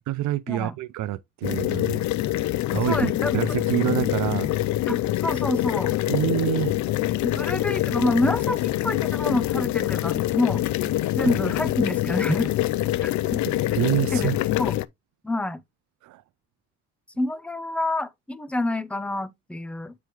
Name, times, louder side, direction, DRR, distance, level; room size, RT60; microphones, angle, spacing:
voice 1, 0.0-2.0 2.7-4.5 6.1-6.8 11.2-11.3 13.8-14.4 16.0-16.2, right 14 dB, 75° right, 0.5 m, -26 dB
sound 1, 1.4-14.9, left 15 dB, 70° left, 0.4 m, -25 dB
voice 2, 2.9-3.3 4.9-5.9 7.2-12.6 13.0-13.4 13.7-13.8 14.1-14.3 14.6-14.8 15.2-15.6 17.2-19.9, left 2 dB, 5° left, 0.5 m, -27 dB
7.4 x 4.6 x 3.1 m
cardioid pair, 90°, 30 cm